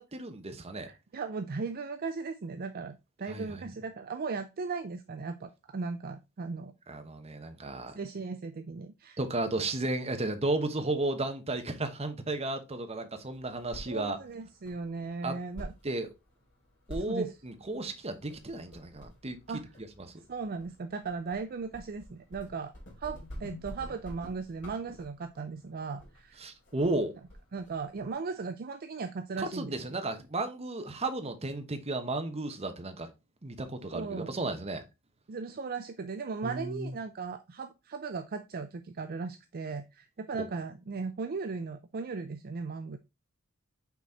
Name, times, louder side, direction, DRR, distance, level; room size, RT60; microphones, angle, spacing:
voice 1, 0.0-0.9 3.3-3.6 6.9-8.0 9.2-14.2 15.2-15.4 15.8-16.1 16.9-19.4 26.4-27.1 29.4-33.1 33.4-34.8 36.4-36.9, right 2 dB, 30° right, 0.9 m, -33 dB
voice 2, 0.8-6.7 7.9-9.2 13.9-15.7 17.1-17.3 19.5-19.6 20.3-22.7 23.0-26.4 27.5-30.0 33.9-34.3 35.3-43.0, right 4 dB, 45° right, 0.4 m, -37 dB
sound 1, 13.2-28.1, equal, 60° left, 2.8 m, -49 dB
6.0 x 4.1 x 4.1 m
head